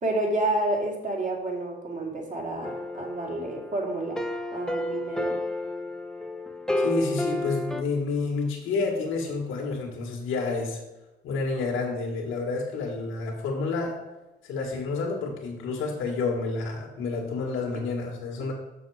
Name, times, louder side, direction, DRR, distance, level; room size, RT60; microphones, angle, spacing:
voice 1, 0.0-4.2 4.5-5.4, right 2 dB, 40° right, 0 dB, 2.3 m, -29 dB
sound 1, 2.6-7.8, left 1 dB, 5° left, 0.7 m, -31 dB
voice 2, 6.8-10.8 11.2-14.0 14.4-18.5, left 3 dB, 85° left, 0 dB, 1.7 m, -29 dB
6.5 x 6.3 x 4.8 m, 1.0 s
cardioid pair, 90°, 20 cm